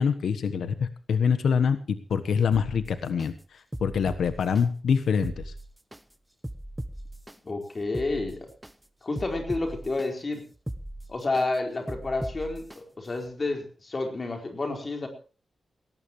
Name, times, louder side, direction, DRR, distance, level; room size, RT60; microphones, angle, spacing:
voice 1, 0.0-3.3 3.8-5.3, left 6 dB, 90° left, 11 dB, 1.2 m, -25 dB
sound 1, 2.5-3.3 3.7-4.6 5.1-6.0 6.4-7.4 7.8-8.7 9.2-10.1 10.5-11.4 11.9-12.8 13.2-13.3, right 1 dB, 5° right, 1.0 m, -38 dB
voice 2, 7.4-8.5 9.0-10.4 11.1-15.1, left 2 dB, 30° left, 3 dB, 4.5 m, -30 dB
18.5 x 18.5 x 3.2 m, 0.37 s
wide cardioid pair, 165°, 0 cm